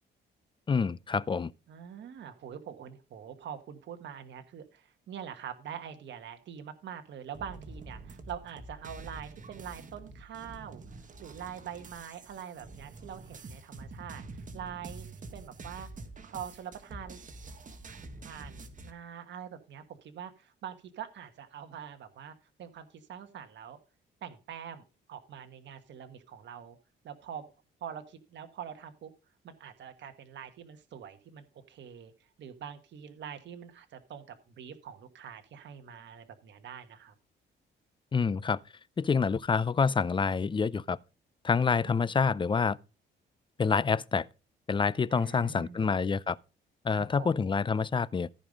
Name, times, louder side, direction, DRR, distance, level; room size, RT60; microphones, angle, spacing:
voice 1, 0.7-1.5 38.1-38.6 39.0-41.0 41.4-42.8 43.6-44.3 44.7-46.4 46.8-48.3, left 5 dB, 25° left, 0.5 m, -27 dB
voice 2, 1.7-15.1 15.3-15.9 16.2-17.2 17.9-18.0 18.2-23.8 24.2-26.8 27.0-27.5 27.8-29.1 29.4-32.1 32.4-37.1 41.8-42.0 45.1-45.9 46.9-47.3, right 8 dB, 65° right, 1.4 m, -44 dB
sound 1, 7.3-18.9, right 3 dB, 40° right, 1.7 m, -46 dB
14.5 x 5.4 x 5.1 m
cardioid pair, 90°, 20 cm